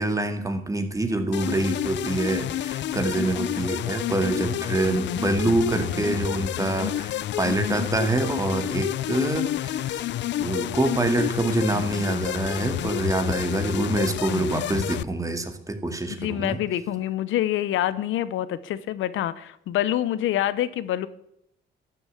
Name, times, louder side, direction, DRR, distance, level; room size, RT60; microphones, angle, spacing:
voice 1, 0.0-10.1 10.4-16.6, right 2 dB, 15° right, 6 dB, 2.1 m, -26 dB
sound 1, 1.3-15.0, left 13 dB, 65° left, 0.5 m, -29 dB
voice 2, 16.2-21.1, left 12 dB, 80° left, 16 dB, 0.9 m, -26 dB
12.5 x 7.0 x 8.5 m, 0.78 s
cardioid pair, 90°, 20 cm